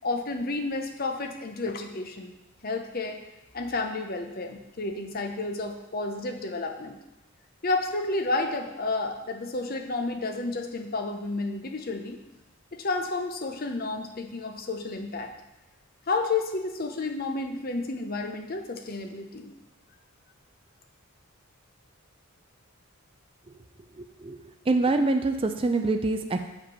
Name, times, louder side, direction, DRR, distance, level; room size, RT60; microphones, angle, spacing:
voice 1, 0.0-2.3 2.6-3.2 3.5-7.0 7.6-12.2 12.7-15.3 16.1-19.5, left 3 dB, 40° left, 4 dB, 0.7 m, -31 dB
voice 2, 24.0-24.4 24.7-26.5, right 2 dB, 25° right, 6 dB, 0.3 m, -25 dB
6.7 x 5.2 x 5.5 m, 0.96 s
head